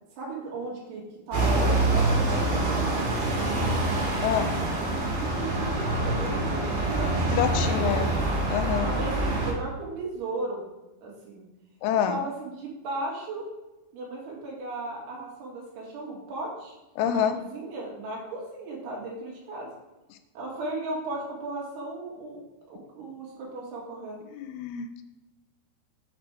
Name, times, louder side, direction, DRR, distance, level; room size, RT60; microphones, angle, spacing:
voice 1, 0.2-3.4 3.7-3.9 4.5-8.2 8.8-10.6 11.0-11.4 12.1-13.5 13.9-16.8 17.1-19.7 20.4-22.4 22.7-24.3, right 2 dB, 80° right, -3 dB, 3.8 m, -36 dB
sound 1, 1.3-9.5, right 2 dB, 65° right, 4.1 m, -26 dB
voice 2, 4.2-4.6 7.3-8.1 8.5-8.9 11.8-12.2 17.0-17.4 24.3-25.1, left 9 dB, 85° left, 8 dB, 2.4 m, -26 dB
7.9 x 6.0 x 3.4 m, 1.1 s
omnidirectional pair, 4.7 m